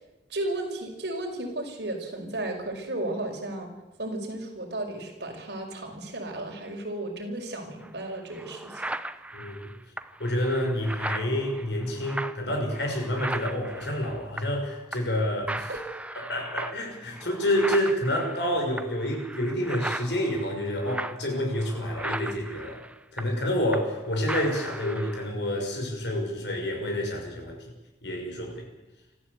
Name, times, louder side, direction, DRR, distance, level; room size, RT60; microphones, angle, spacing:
voice 1, 0.3-3.7 4.0-8.8 15.7-15.8, right 1 dB, 70° right, 2 dB, 5.4 m, -34 dB
sound 1, 7.8-7.9 8.3-14.7 14.9-15.2 15.5-24.0 24.3-25.3, right 1 dB, 10° right, 0.8 m, -37 dB
voice 2, 9.3-9.7 10.2-15.7 16.2-22.8 23.1-27.6 28.0-28.7, equal, 75° left, 2 dB, 6.4 m, -28 dB
25.5 x 14.5 x 8.3 m, 1.0 s
head